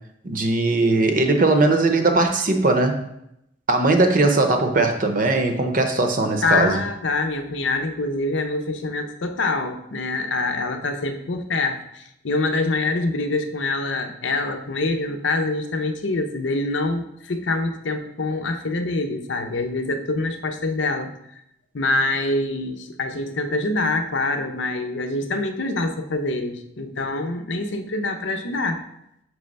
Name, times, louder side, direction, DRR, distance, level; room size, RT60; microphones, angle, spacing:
voice 1, 0.2-3.0 3.7-6.8, right 2 dB, 45° right, 5 dB, 0.7 m, -19 dB
voice 2, 6.4-21.1 21.7-28.8, left 2 dB, 75° left, 6 dB, 0.7 m, -25 dB
6.1 x 3.3 x 5.3 m, 0.79 s
head